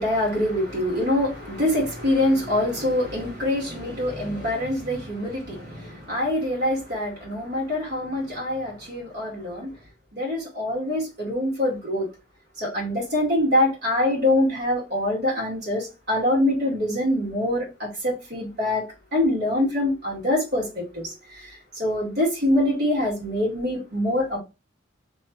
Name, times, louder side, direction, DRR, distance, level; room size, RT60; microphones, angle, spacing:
voice 1, 0.0-9.7 10.1-12.1 12.6-18.8 19.1-24.4, left 1 dB, 55° right, 1.8 m, -24 dB
3.0 x 2.3 x 3.3 m
head